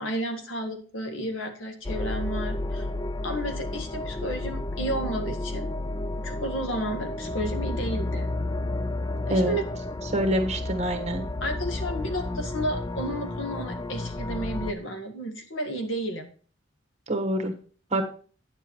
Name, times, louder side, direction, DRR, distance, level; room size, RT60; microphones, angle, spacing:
voice 1, 0.0-2.8 3.2-5.7 6.2-8.3 9.3-9.6 11.4-16.3, right 1 dB, 85° left, 5 dB, 1.8 m, -32 dB
sound 1, 1.8-14.7, left 2 dB, 20° left, 0.5 m, -31 dB
voice 2, 10.1-11.2 17.1-17.5 17.9-18.0, right 1 dB, 35° right, 5 dB, 1.4 m, -25 dB
9.5 x 7.2 x 4.6 m, 0.42 s
head